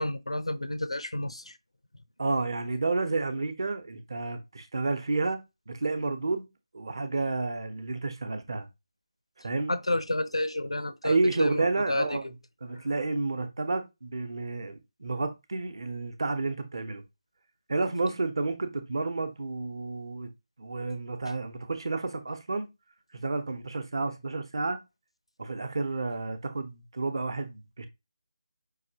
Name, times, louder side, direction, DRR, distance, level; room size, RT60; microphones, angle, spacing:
voice 1, 0.0-1.5 9.7-12.2, left 1 dB, 80° left, 0.6 m, -30 dB
voice 2, 2.2-5.4 5.7-6.5 6.7-8.7 9.4-9.8 11.0-12.2 12.6-17.0 17.7-20.3 20.6-22.7 23.1-24.8 25.4-27.9, right 3 dB, 50° right, 0.9 m, -30 dB
5.6 x 2.9 x 2.8 m
figure-of-eight pair, 155°, 3 cm